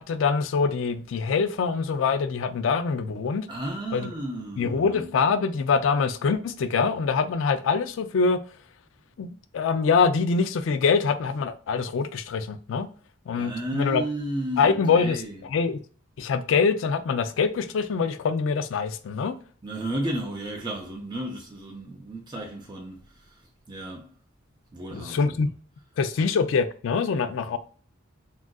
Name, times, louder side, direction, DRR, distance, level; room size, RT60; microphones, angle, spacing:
voice 1, 0.0-3.5 3.9-4.1 4.6-8.4 9.2-12.9 13.3-14.0 14.6-15.2 15.5-15.8 16.2-19.4 24.9-25.5 26.0-27.6, left 5 dB, 65° left, 0.3 m, -24 dB
voice 2, 3.5-5.1 13.4-15.4 19.6-24.2 24.7-25.5 26.2-26.3, right 1 dB, 20° right, 0.4 m, -33 dB
3.6 x 2.4 x 2.3 m
head